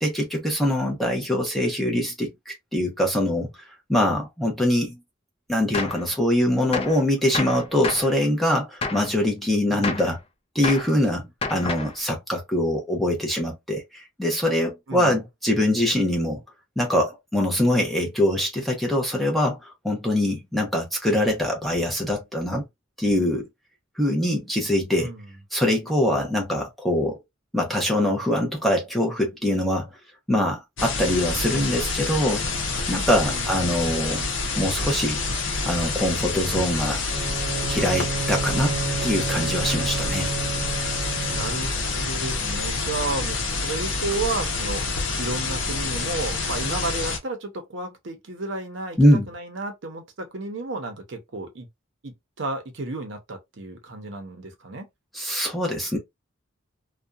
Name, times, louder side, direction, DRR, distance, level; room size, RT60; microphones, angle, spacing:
voice 1, 0.0-3.5 3.9-5.0 5.5-10.2 10.5-16.4 16.8-19.6 19.8-22.6 23.0-23.5 24.0-25.1 25.5-27.2 27.5-29.9 30.3-32.5 32.9-34.3 34.6-35.2 35.7-37.0 37.7-38.7 39.0-40.3 49.0-49.3 55.1-56.0, left 1 dB, ahead, 0.8 m, -23 dB
Gunshot gunfire, 5.7-6.0 6.7-7.0 7.3-8.1 8.8-9.1 9.8-10.1 10.6-10.9 11.4-12.0, left 4 dB, 30° left, 0.4 m, -29 dB
voice 2, 9.7-10.1 14.9-15.2 25.0-25.3 33.2-33.6 41.3-49.0 49.3-51.7 52.0-54.9, right 2 dB, 65° right, 0.7 m, -32 dB
sound 1, 30.8-47.2, left 3 dB, 70° left, 0.8 m, -27 dB
Bowed string instrument, 37.0-41.9, right 5 dB, 40° right, 0.3 m, -31 dB
2.7 x 2.2 x 2.3 m
head